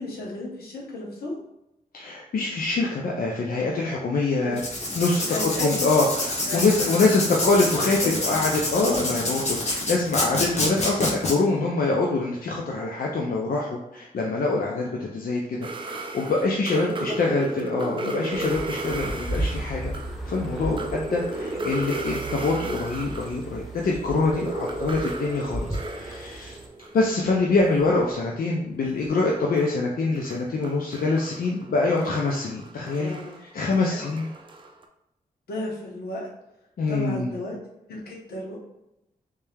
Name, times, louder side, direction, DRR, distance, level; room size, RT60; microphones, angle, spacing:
voice 1, 0.0-1.4 4.4-4.5 5.2-5.9 6.5-6.7 7.6-8.2 16.7-17.4 33.0-33.4 33.9-34.1 35.5-36.3 36.9-37.6 37.9-38.6, left 1 dB, 90° left, -3 dB, 1.0 m, -34 dB
voice 2, 1.9-4.6 5.0-19.8 20.3-25.7 25.9-26.6 26.9-33.1 33.5-34.3 36.8-37.3, left 3 dB, 70° left, -2 dB, 0.6 m, -25 dB
Writing, 4.5-11.3, left 2 dB, 45° left, 1.0 m, -27 dB
sound 1, 15.6-23.5 23.8-28.5 28.7-34.8, right 2 dB, 35° right, 0.5 m, -35 dB
sound 2, 18.3-26.7, right 1 dB, ahead, 0.8 m, -35 dB
3.3 x 2.8 x 3.5 m, 0.88 s
cardioid pair, 75°, 16 cm